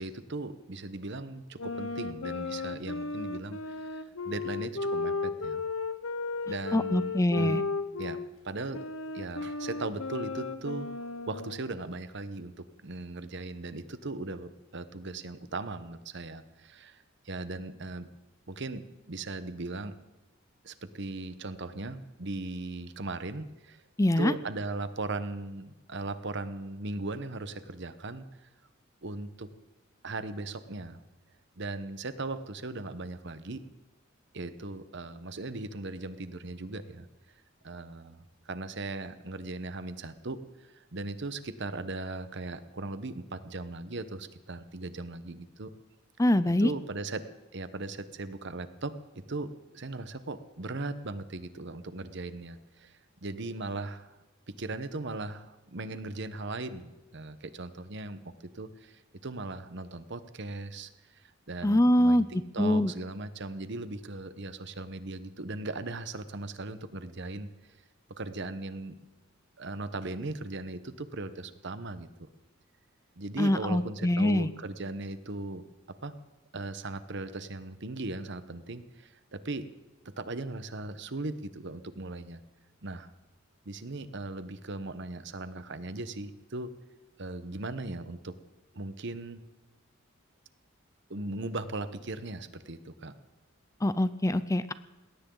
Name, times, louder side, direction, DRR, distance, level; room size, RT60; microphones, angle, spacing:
voice 1, 0.0-5.6 6.5-7.6 8.0-8.9 9.1-10.9 11.3-18.1 18.5-19.9 20.6-23.8 24.2-28.5 29.0-29.5 30.0-31.0 31.6-33.6 34.3-37.1 37.6-45.7 46.6-47.2 47.5-48.9 49.3-49.5 49.7-52.9 53.2-54.2 54.6-62.2 62.5-67.5 68.2-69.0 69.6-72.1 73.2-75.6 76.0-76.1 76.5-79.7 80.2-82.4 82.8-83.1 83.7-86.7 87.2-88.3 88.7-89.5 91.1-93.1, right 2 dB, 60° right, 12 dB, 1.1 m, -38 dB
sound 1, 1.6-8.3 8.7-11.7, left 3 dB, 90° left, 1.1 m, -35 dB
voice 2, 6.7-7.6 24.0-24.3 46.2-46.7 61.6-62.3 62.6-62.9 73.4-74.5 93.8-94.7, left 1 dB, 15° left, 14 dB, 0.6 m, -24 dB
20.5 x 17.5 x 3.9 m, 1.1 s
head